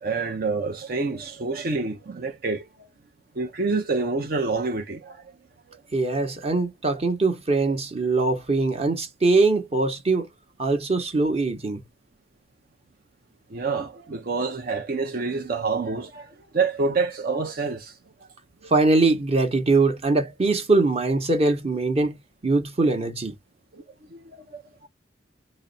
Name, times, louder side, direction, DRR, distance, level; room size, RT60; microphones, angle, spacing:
voice 1, 0.0-2.7 3.4-5.2 5.7-5.8 7.7-7.8 13.5-17.9 18.6-18.7 23.7-23.8 24.1-24.9, right 4 dB, 55° right, 0.6 m, -27 dB
voice 2, 5.9-10.3 10.6-11.8 18.7-22.2 22.4-23.3, right 3 dB, 35° right, 0.9 m, -22 dB
3.9 x 2.1 x 3.9 m
head